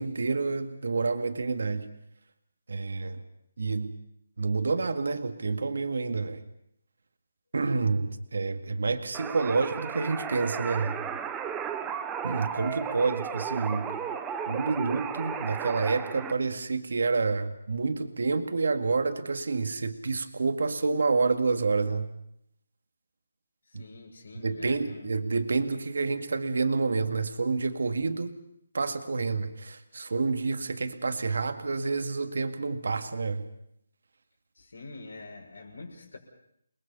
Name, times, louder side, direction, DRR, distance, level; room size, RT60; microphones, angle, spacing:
voice 1, 0.0-1.9 2.7-3.2 3.6-4.0 4.4-6.4 7.5-11.0 12.2-14.0 14.5-22.1 23.7-23.9 24.4-28.4 28.7-33.5, right 4 dB, 65° right, 8 dB, 2.0 m, -28 dB
sound 1, 9.1-16.3, right 7 dB, 10° right, 0.8 m, -34 dB
voice 2, 23.7-25.2 34.5-36.2, left 3 dB, 75° left, 3 dB, 6.3 m, -46 dB
29.0 x 21.5 x 5.5 m, 0.73 s
hypercardioid pair, 175°, 0 cm